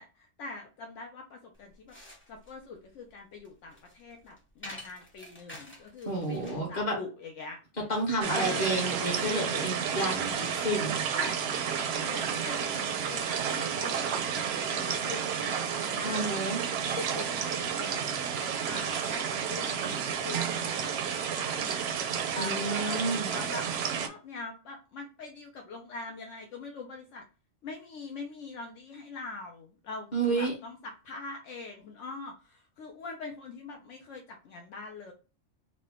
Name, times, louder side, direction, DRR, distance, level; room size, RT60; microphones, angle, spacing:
voice 1, 0.0-2.0 2.3-7.6 8.3-8.8 11.1-16.5 16.9-18.1 18.7-21.8 22.3-23.7 24.0-27.3 27.6-35.1, left 3 dB, 75° left, 2 dB, 0.9 m, -43 dB
sound 1, 1.5-6.7, left 1 dB, 10° left, 0.7 m, -49 dB
voice 2, 6.0-7.0 7.9-11.0 16.0-16.6 22.4-23.3 30.1-30.5, right 1 dB, 35° left, -1 dB, 1.4 m, -30 dB
sound 2, 8.2-24.1, right 7 dB, 65° right, 0.7 m, -31 dB
3.7 x 2.2 x 3.6 m, 0.33 s
omnidirectional pair, 1.3 m